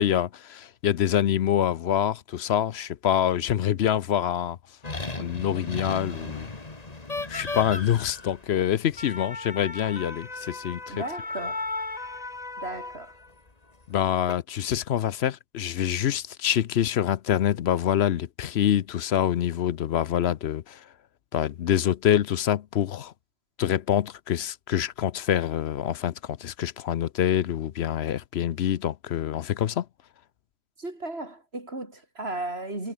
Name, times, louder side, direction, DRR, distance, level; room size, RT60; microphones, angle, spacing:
voice 1, 0.0-4.6 5.2-6.5 7.3-10.8 13.9-20.8 21.3-23.1 23.6-29.8, left 10 dB, 65° left, 0.9 m, -25 dB
sound 1, 4.8-13.3 14.0-14.3, left 3 dB, 35° left, 2.2 m, -36 dB
voice 2, 10.9-11.7 12.6-13.2 30.8-32.9, right 2 dB, 60° right, 5.4 m, -35 dB
omnidirectional pair, 1.2 m